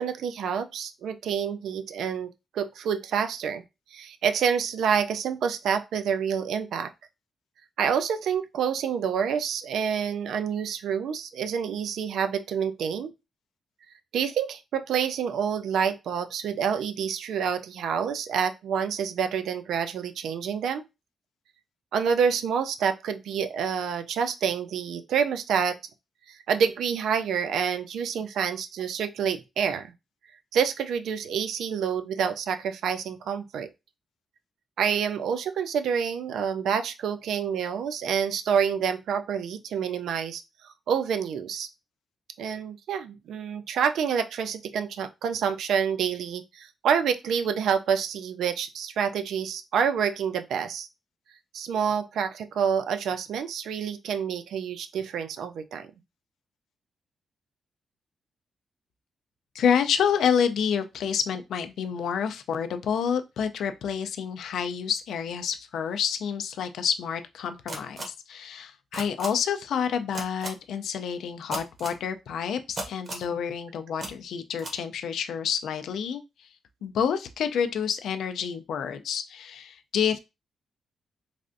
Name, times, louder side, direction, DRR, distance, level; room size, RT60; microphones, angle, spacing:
voice 1, 0.0-3.6 3.9-6.9 7.8-13.1 14.1-20.8 21.9-25.8 26.3-29.9 30.5-33.7 34.8-40.4 40.9-41.7 42.4-50.9 51.5-55.9, right 7 dB, 85° right, 0.3 m, -28 dB
voice 2, 59.5-76.5 76.8-80.2, left 7 dB, 75° left, 0.3 m, -28 dB
sound 1, 67.7-68.0 68.9-69.3 70.1-70.5 71.5-72.0 72.8-73.3 74.0-74.1 74.6-74.7, right 1 dB, 35° right, 0.7 m, -34 dB
3.2 x 2.5 x 2.5 m
wide cardioid pair, 165°, 0 cm